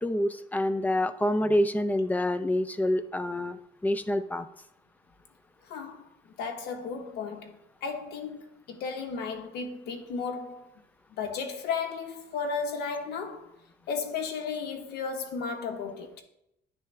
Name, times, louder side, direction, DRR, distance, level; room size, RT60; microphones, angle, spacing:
voice 1, 0.0-4.5, left 1 dB, 10° left, 0.4 m, -27 dB
voice 2, 5.6-6.1 6.4-10.7 11.1-13.5 13.9-16.2, left 5 dB, 75° left, 1.0 m, -34 dB
10.0 x 3.4 x 3.2 m
cardioid pair, 110°, 17 cm